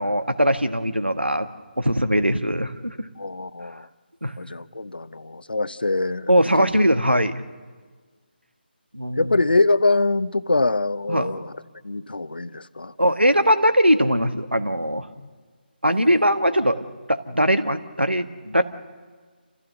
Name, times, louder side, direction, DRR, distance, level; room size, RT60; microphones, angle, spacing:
voice 1, 0.0-1.5 1.8-3.1 4.2-4.3 6.3-7.4 8.9-9.3 11.1-11.3 13.0-15.1 15.8-18.6, equal, 90° right, 9 dB, 1.5 m, -21 dB
voice 2, 3.2-3.9 4.4-6.3 6.6-6.7 9.2-11.5 11.8-12.9 15.2-15.3, left 2 dB, 65° left, 16 dB, 0.7 m, -24 dB
28.0 x 15.5 x 6.8 m, 1.5 s
figure-of-eight pair, 155°, 6 cm